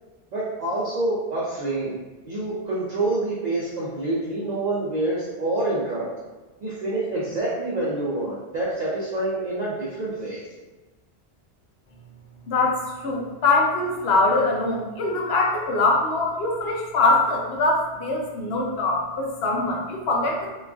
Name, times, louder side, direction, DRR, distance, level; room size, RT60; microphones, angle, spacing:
voice 1, 0.3-2.0 2.3-6.0 6.6-10.4, right 2 dB, 50° right, -8 dB, 0.6 m, -27 dB
voice 2, 12.5-20.5, left 2 dB, 80° left, -1 dB, 0.8 m, -23 dB
3.0 x 2.4 x 2.3 m, 1.2 s
omnidirectional pair, 1.0 m